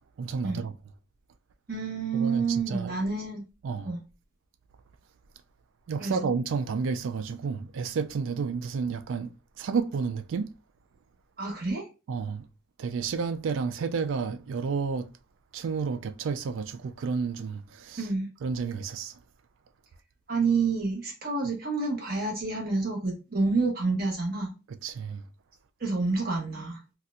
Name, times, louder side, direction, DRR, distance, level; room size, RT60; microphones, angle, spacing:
voice 1, 0.2-0.7 2.1-2.9 3.6-3.9 5.9-10.5 12.1-12.5 12.8-15.1 15.5-18.1 18.4-19.2 24.7-25.2, right 5 dB, 85° right, 0.3 m, -31 dB
voice 2, 1.7-3.4 3.8-4.0 6.0-6.3 11.4-11.8 18.0-18.3 20.3-24.5 25.8-26.8, right 3 dB, 50° right, 1.0 m, -28 dB
4.1 x 2.3 x 2.4 m
head